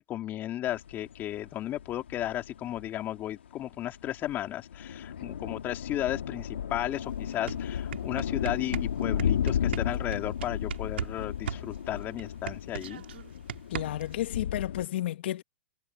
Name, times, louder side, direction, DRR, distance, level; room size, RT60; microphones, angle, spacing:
voice 1, 0.0-13.0, left 13 dB, 30° left, 3.3 m, -34 dB
sound 1, 0.7-14.9, left 8 dB, 85° left, 1.8 m, -34 dB
sound 2, 6.9-7.0 7.3-11.2 11.5-14.2, right 10 dB, 80° right, 3.4 m, -38 dB
voice 2, 13.7-15.4, left 13 dB, 65° left, 1.5 m, -32 dB
hypercardioid pair, 120°, 6 cm